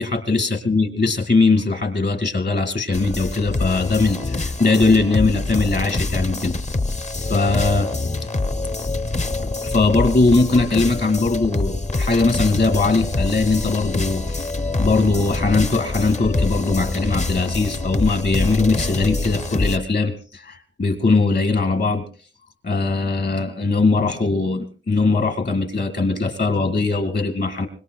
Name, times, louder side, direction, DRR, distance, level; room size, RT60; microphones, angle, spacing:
voice 1, 0.0-6.5 7.3-7.9 9.6-14.2 14.8-22.0 22.6-27.7, left 3 dB, 55° left, 8 dB, 2.1 m, -20 dB
sound 1, 2.9-19.8, left 2 dB, 35° left, 0.7 m, -25 dB
25.0 x 21.5 x 2.3 m, 0.38 s
wide cardioid pair, 100°, 21 cm